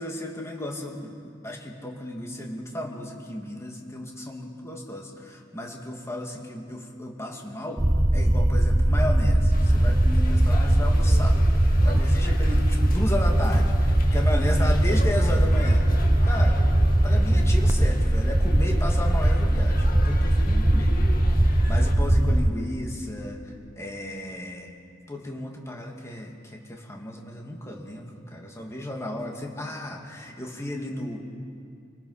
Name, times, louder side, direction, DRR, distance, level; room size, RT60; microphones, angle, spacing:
voice 1, 0.0-7.9 8.1-15.9 16.2-16.6 17.0-20.9 21.4-23.4 23.8-24.7 25.1-31.2, left 1 dB, 15° left, 0 dB, 2.4 m, -34 dB
sound 1, 7.8-22.5, right 1 dB, 15° right, 0.6 m, -20 dB
sound 2, 9.5-22.0, left 2 dB, 50° left, 1.8 m, -41 dB
27.0 x 19.5 x 5.8 m, 2.4 s
head